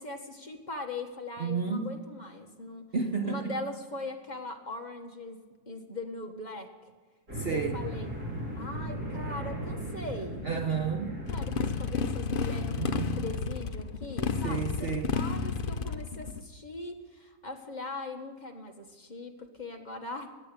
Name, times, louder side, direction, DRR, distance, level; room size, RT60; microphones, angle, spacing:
voice 1, 0.0-2.8 3.2-5.4 5.7-6.7 7.5-8.1 8.5-10.5 11.3-20.3, left 2 dB, 30° left, 1.6 m, -40 dB
voice 2, 1.4-2.0 2.9-3.6 7.4-7.8 10.4-11.2 12.7-13.2 14.4-15.2, right 5 dB, 45° right, 1.0 m, -31 dB
sound 1, 7.3-12.3, right 1 dB, 75° right, 4.1 m, -37 dB
Motorcycle, 11.3-16.4, left 5 dB, 45° left, 0.7 m, -31 dB
17.0 x 11.0 x 6.9 m
omnidirectional pair, 1.7 m